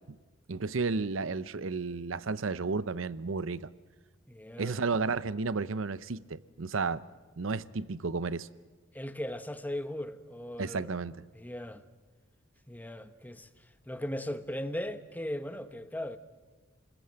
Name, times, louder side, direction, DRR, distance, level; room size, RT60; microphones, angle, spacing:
voice 1, 0.5-3.7 4.6-7.0 7.4-8.5 10.6-11.3, right 4 dB, 70° right, 0.7 m, -32 dB
voice 2, 4.3-4.8 8.9-11.0 11.3-11.8 12.7-13.5 13.9-16.2, left 1 dB, 10° left, 1.1 m, -38 dB
29.0 x 20.5 x 7.8 m
head